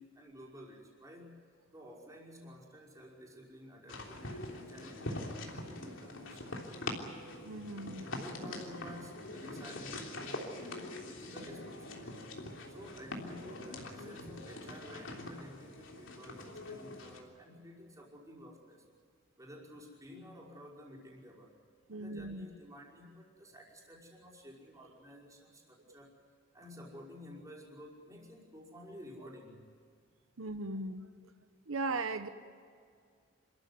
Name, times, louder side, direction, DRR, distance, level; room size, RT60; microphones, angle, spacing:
voice 1, 0.0-1.4 1.7-6.6 8.0-12.4 12.7-18.9 19.4-21.6 21.9-26.1 26.5-29.7, left 1 dB, 15° right, -3 dB, 5.3 m, -52 dB
sound 1, 3.9-17.2, left 2 dB, 65° left, 3.4 m, -44 dB
voice 2, 7.4-8.1 21.9-22.5 30.4-31.1 31.7-32.3, right 2 dB, 85° right, 9 dB, 1.0 m, -38 dB
28.0 x 14.5 x 9.7 m, 2.2 s
head